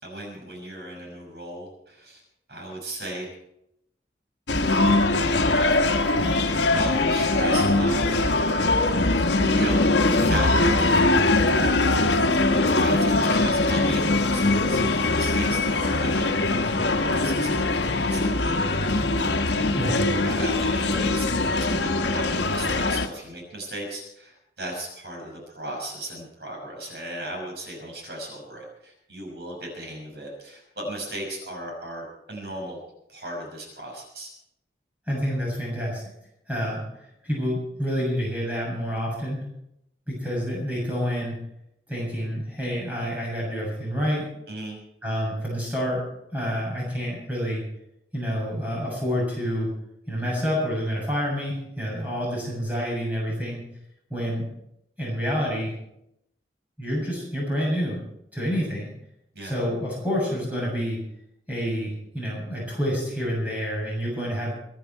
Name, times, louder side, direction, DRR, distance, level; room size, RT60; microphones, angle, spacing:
voice 1, 0.0-2.2 2.5-3.3 6.7-8.1 9.5-9.8 10.1-10.5 10.8-10.9 12.7-16.6 17.0-32.8 33.1-34.3 44.5-44.8 59.3-59.5, right 1 dB, 70° right, 0 dB, 5.9 m, -36 dB
sound 1, 4.5-23.1, left 2 dB, 80° left, 1.1 m, -22 dB
voice 2, 35.1-36.0 36.5-39.5 40.1-41.4 41.9-44.3 45.0-46.0 46.3-47.6 48.1-49.7 50.1-53.6 54.1-54.4 55.0-55.7 56.8-58.0 58.3-58.9 59.4-61.0 61.5-64.5, equal, 10° right, -5 dB, 7.4 m, -28 dB
24.0 x 10.5 x 4.6 m, 0.80 s
head